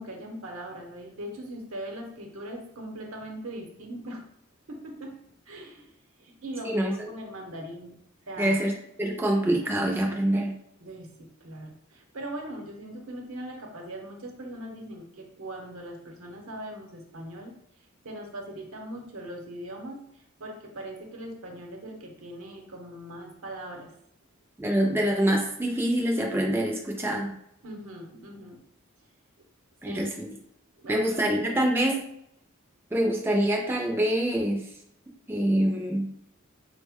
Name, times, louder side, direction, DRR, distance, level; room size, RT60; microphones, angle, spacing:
voice 1, 0.0-4.3 4.7-5.9 6.2-8.0 8.3-8.6 10.8-17.6 18.0-23.9 27.6-28.6 29.8-30.2 30.8-31.9, right 1 dB, 80° right, 2 dB, 0.7 m, -40 dB
voice 2, 8.4-8.7 9.0-10.5 24.6-27.3 29.8-30.3 30.9-32.0 32.9-34.7 35.3-36.1, right 1 dB, 10° right, -1 dB, 0.3 m, -25 dB
3.7 x 2.1 x 3.5 m, 0.74 s
head